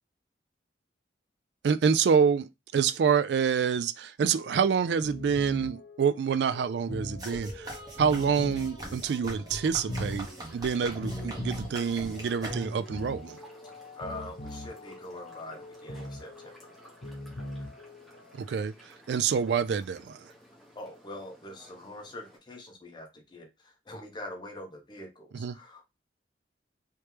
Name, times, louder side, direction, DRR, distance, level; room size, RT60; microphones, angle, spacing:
voice 1, 1.6-7.7 8.0-10.3 10.5-13.4 18.4-20.2 25.3-25.6, right 6 dB, 70° right, 0.3 m, -27 dB
sound 1, 4.3-18.7, left 1 dB, 65° left, 0.8 m, -42 dB
sound 2, 7.2-13.0, right 1 dB, 20° right, 1.2 m, -41 dB
sound 3, 10.0-22.4, equal, ahead, 1.1 m, -55 dB
voice 2, 14.0-16.6 20.8-25.9, left 1 dB, 25° left, 0.7 m, -43 dB
3.2 x 3.0 x 3.2 m
head